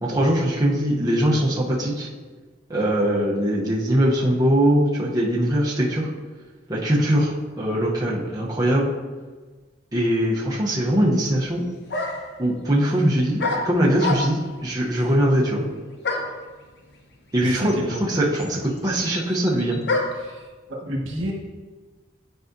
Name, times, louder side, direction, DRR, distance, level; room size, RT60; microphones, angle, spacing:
voice 1, 0.0-2.1 2.7-6.1 6.7-8.9 9.9-11.7 12.4-15.6 17.3-17.7 18.1-19.8, right 1 dB, 20° right, -5 dB, 0.8 m, -21 dB
sound 1, 11.4-11.5 11.9-12.4 13.4-14.5 16.0-16.4 17.4-17.5 17.7-20.3, left 3 dB, 55° left, 0.8 m, -27 dB
voice 2, 17.4-18.0 20.1-21.3, equal, 80° right, 0 dB, 1.4 m, -30 dB
10.0 x 4.8 x 2.7 m, 1.3 s
head